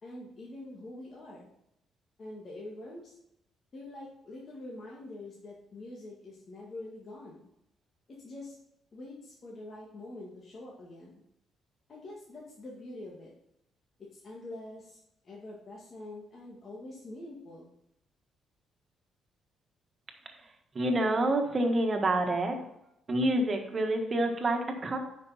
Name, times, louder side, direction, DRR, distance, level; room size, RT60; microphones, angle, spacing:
voice 1, 0.0-1.5 2.2-3.2 3.7-7.5 8.1-8.6 8.9-11.1 11.9-13.3 14.0-15.0 15.2-17.7, left 2 dB, 45° left, -4 dB, 1.9 m, -45 dB
voice 2, 20.7-22.6 23.1-25.0, right 1 dB, 35° right, 4 dB, 1.6 m, -27 dB
9.6 x 5.4 x 4.2 m, 0.81 s
cardioid pair, 90°, 0 cm